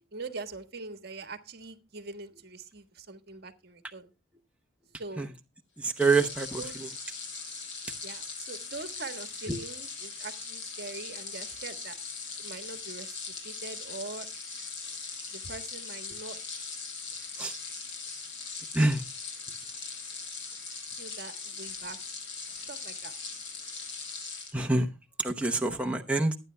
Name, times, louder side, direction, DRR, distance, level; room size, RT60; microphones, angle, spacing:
voice 1, 0.1-4.1 5.0-5.3 6.6-6.8 8.0-12.0 12.4-14.3 15.3-16.4 21.0-22.0 22.7-23.1, right 3 dB, 55° right, 1.5 m, -43 dB
voice 2, 5.8-6.6 9.5-9.6 17.4-17.5 18.7-19.0 24.5-24.9 25.2-26.4, right 3 dB, 5° right, 0.8 m, -26 dB
sound 1, 5.9-24.5, left 4 dB, 70° left, 5.3 m, -40 dB
23.5 x 9.6 x 2.2 m
head